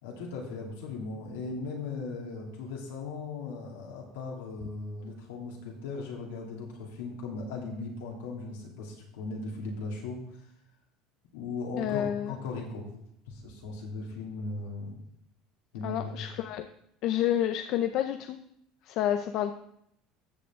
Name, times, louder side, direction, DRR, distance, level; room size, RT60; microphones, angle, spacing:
voice 1, 0.0-10.5 11.3-12.9 13.3-15.0 15.7-16.3, left 3 dB, 85° left, -1 dB, 2.9 m, -38 dB
voice 2, 11.8-12.3 15.8-16.7 17.0-18.4 18.9-19.5, left 11 dB, 60° left, 8 dB, 0.6 m, -29 dB
14.0 x 6.9 x 3.7 m, 0.73 s
hypercardioid pair, 90°, 0 cm